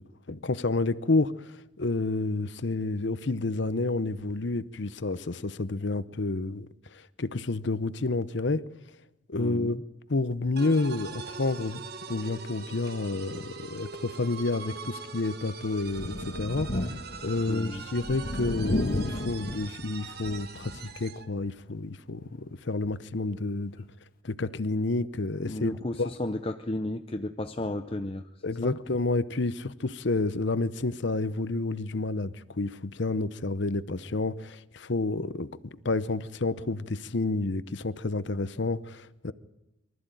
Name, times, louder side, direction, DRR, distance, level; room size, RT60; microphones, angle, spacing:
voice 1, 0.3-6.7 6.9-8.6 9.3-9.8 10.1-11.8 12.1-23.8 24.2-26.1 28.4-39.3, left 2 dB, 60° left, 0.8 m, -30 dB
voice 2, 9.4-9.8 17.5-17.9 25.4-28.2 28.6-28.8, left 1 dB, 30° left, 0.6 m, -33 dB
sound 1, 10.6-21.3, right 5 dB, 50° right, 1.2 m, -42 dB
Thunder, 15.8-21.0 21.4-21.5 22.8-22.9, left 1 dB, 45° left, 1.3 m, -33 dB
23.5 x 14.0 x 9.1 m
head